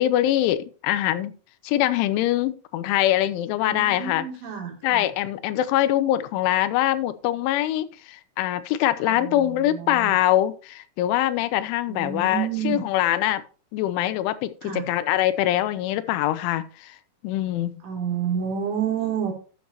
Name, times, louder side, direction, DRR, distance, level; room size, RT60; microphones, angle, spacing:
voice 1, 0.0-1.3 1.6-4.2 4.8-13.4 13.7-17.0 17.2-17.8, left 13 dB, 85° left, 12 dB, 3.1 m, -23 dB
voice 2, 3.5-5.1 9.0-10.1 11.9-12.8 14.6-14.9 17.8-19.3, right 8 dB, 80° right, 0 dB, 5.5 m, -29 dB
12.5 x 8.6 x 2.9 m, 0.37 s
omnidirectional pair, 5.5 m